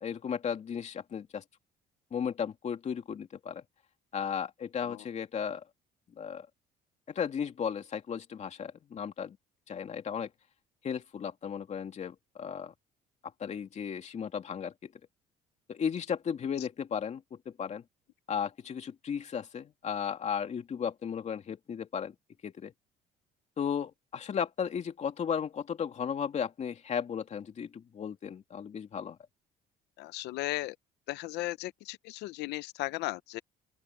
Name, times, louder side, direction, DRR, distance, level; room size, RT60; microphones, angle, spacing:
voice 1, 0.0-1.4 2.1-3.6 4.1-5.6 6.2-6.5 7.1-9.4 9.7-10.3 10.8-12.7 13.4-14.9 15.7-17.8 18.3-22.1 22.4-22.7 23.6-29.2, left 7 dB, 45° left, 2.8 m, -35 dB
voice 2, 30.0-30.8 31.1-33.4, left 18 dB, 85° left, 0.7 m, -36 dB
open air
cardioid pair, 110°, 17 cm